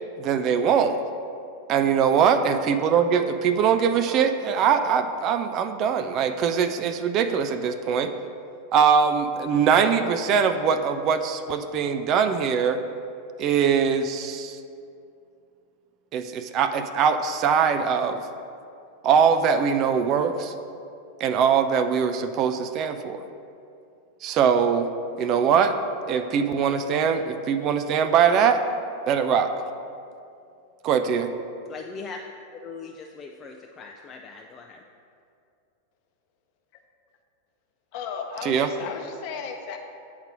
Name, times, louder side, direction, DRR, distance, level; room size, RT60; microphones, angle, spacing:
voice 1, 0.2-1.0 1.7-8.1 8.7-12.8 13.4-14.6 16.1-18.2 19.0-20.5 21.2-23.2 24.2-24.9 25.2-25.8 26.1-28.6 29.1-29.5 30.8-31.3 38.4-38.7, right 7 dB, 35° right, 9 dB, 0.4 m, -22 dB
voice 2, 3.9-4.2 31.7-32.2 32.6-34.8 38.8-39.0, left 4 dB, 25° left, 2 dB, 0.4 m, -40 dB
voice 3, 37.9-39.8, left 6 dB, 45° left, 4 dB, 0.8 m, -35 dB
8.6 x 3.9 x 6.0 m, 2.5 s
figure-of-eight pair, 90°, 0 cm